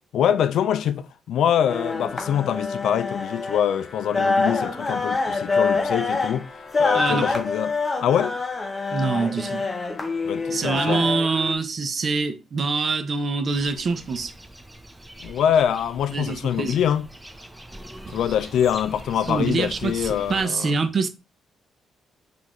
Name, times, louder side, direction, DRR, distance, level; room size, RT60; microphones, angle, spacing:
voice 1, 0.1-6.5 6.8-8.4 10.2-11.1 15.2-17.1 18.1-20.8, left 9 dB, 75° left, 0.3 m, -24 dB
sound 1, 1.7-11.5, left 3 dB, 25° left, 0.7 m, -26 dB
voice 2, 6.9-7.3 8.9-9.6 10.5-14.3 16.1-16.8 18.1-18.2 19.3-21.1, right 4 dB, 45° right, 0.6 m, -25 dB
sound 2, 13.5-20.4, right 1 dB, 10° right, 0.6 m, -42 dB
5.6 x 2.5 x 3.0 m
cardioid pair, 90°, 0 cm